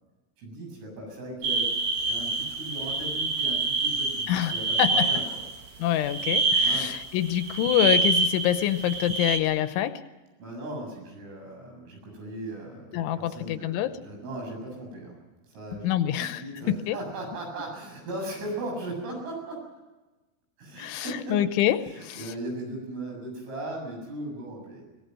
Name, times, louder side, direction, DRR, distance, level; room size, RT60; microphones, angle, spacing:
voice 1, 0.4-1.7 2.0-5.4 6.6-7.0 10.4-15.2 15.5-16.0 16.4-19.6 20.6-21.4 21.8-24.9, right 1 dB, 85° right, 9.8 m, -37 dB
sound 1, 1.4-5.6 6.0-9.4, right 3 dB, 55° right, 2.9 m, -26 dB
voice 2, 4.3-5.1 5.8-10.0 12.9-14.0 15.8-17.0 20.8-22.3, left 12 dB, 80° left, 3.2 m, -26 dB
23.0 x 19.0 x 7.8 m
omnidirectional pair, 5.7 m